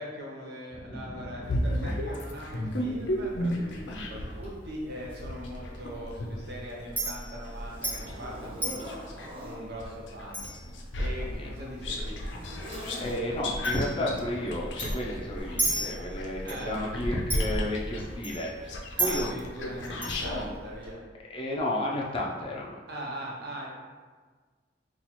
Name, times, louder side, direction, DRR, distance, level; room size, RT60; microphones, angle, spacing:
voice 1, 0.0-8.9 9.4-10.5 11.0-12.2 16.4-16.8 19.0-21.0 22.9-23.7, equal, 60° right, -2 dB, 0.7 m, -41 dB
voice 2, 0.8-1.3 1.8-2.0 11.4-11.5 12.6-19.4 21.3-22.8, left 1 dB, 30° left, -3 dB, 0.5 m, -32 dB
sound 1, 1.4-4.4 4.9-9.3 9.8-20.5, left 1 dB, 80° left, 0.5 m, -34 dB
Chink clink, 2.7-20.9, right 1 dB, 10° right, 1.1 m, -38 dB
Zipper (clothing), 6.0-6.1 6.7-9.6 10.6-13.6 14.5-14.8 15.4-15.5, equal, 30° right, 0.5 m, -44 dB
2.9 x 2.4 x 4.1 m, 1.4 s
head